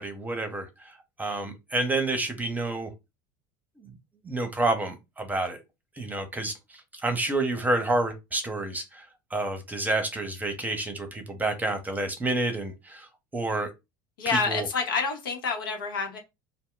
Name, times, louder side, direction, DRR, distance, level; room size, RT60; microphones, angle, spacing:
voice 1, 0.0-2.9 3.8-3.9 4.2-5.6 6.0-9.1 9.3-13.7 14.3-14.7, right 2 dB, 15° right, 0.7 m, -29 dB
voice 2, 14.2-16.2, left 4 dB, 90° left, 0.8 m, -28 dB
2.1 x 2.0 x 3.7 m
hypercardioid pair, 90°, 11 cm